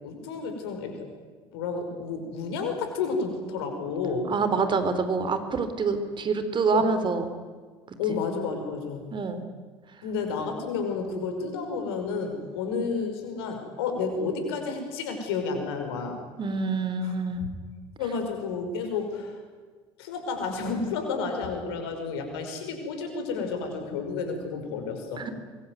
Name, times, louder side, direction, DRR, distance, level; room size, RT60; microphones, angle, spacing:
voice 1, 0.0-1.1 1.5-4.3 6.7-6.9 8.0-9.1 10.0-16.2 17.0-17.1 17.4-17.5 18.0-19.4 20.0-25.2, left 4 dB, 75° left, 5 dB, 5.7 m, -31 dB
voice 2, 4.3-7.2 9.1-9.4 16.4-17.4 25.2-25.3, right 4 dB, 40° right, 10 dB, 3.8 m, -26 dB
24.5 x 23.0 x 9.5 m, 1.5 s
hypercardioid pair, 65°, 13 cm